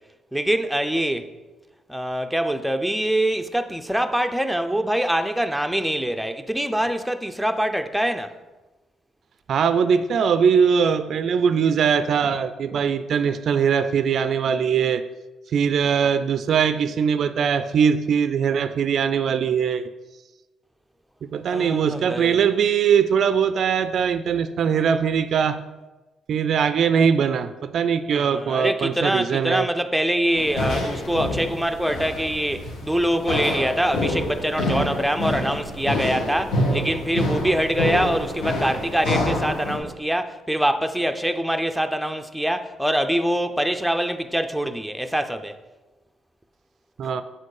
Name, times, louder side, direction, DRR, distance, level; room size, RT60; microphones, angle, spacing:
voice 1, 0.3-1.3 1.9-8.3 21.5-22.4 28.1-45.5, right 1 dB, ahead, 0.5 m, -24 dB
voice 2, 9.5-15.0 15.5-19.8 21.3-25.6 26.3-29.7 47.0-47.2, right 7 dB, 60° right, 0.3 m, -21 dB
sound 1, 30.3-39.8, left 1 dB, 85° left, 1.4 m, -27 dB
7.4 x 4.3 x 4.8 m
cardioid pair, 90°, 0 cm